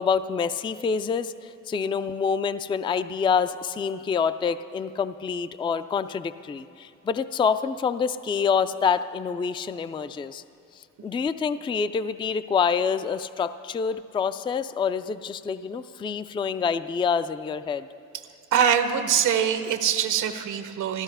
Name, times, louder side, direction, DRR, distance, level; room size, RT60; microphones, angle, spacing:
voice 1, 0.0-10.4 10.7-17.9, left 6 dB, 15° left, 12 dB, 0.3 m, -27 dB
voice 2, 18.5-21.0, right 8 dB, 80° right, 8 dB, 1.0 m, -23 dB
14.5 x 13.0 x 5.5 m, 2.5 s
cardioid pair, 90°, 30 cm